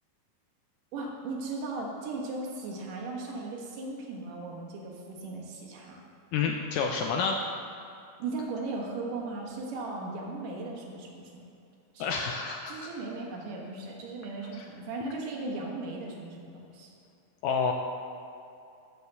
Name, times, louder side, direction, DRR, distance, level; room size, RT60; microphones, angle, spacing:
voice 1, 0.9-6.0 8.2-11.4 11.9-12.1 12.7-16.9, right 3 dB, 65° right, -1 dB, 2.7 m, -37 dB
voice 2, 6.3-7.4 12.0-12.7 14.5-14.6 17.4-17.7, left 5 dB, 85° left, 2 dB, 1.9 m, -29 dB
13.5 x 4.8 x 6.7 m, 2.6 s
omnidirectional pair, 4.4 m